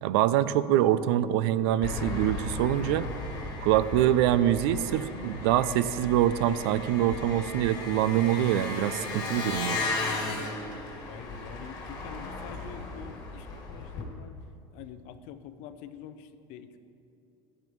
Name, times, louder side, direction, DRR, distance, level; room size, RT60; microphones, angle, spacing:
voice 1, 0.0-3.1 3.6-9.8, right 12 dB, 70° right, 15 dB, 0.4 m, -25 dB
Engine, 1.8-14.0, left 3 dB, 30° left, 2.2 m, -36 dB
voice 2, 11.0-14.4 14.7-16.8, left 9 dB, 60° left, 11 dB, 0.6 m, -46 dB
14.0 x 8.8 x 3.1 m, 2.8 s
supercardioid pair, 125°, 14 cm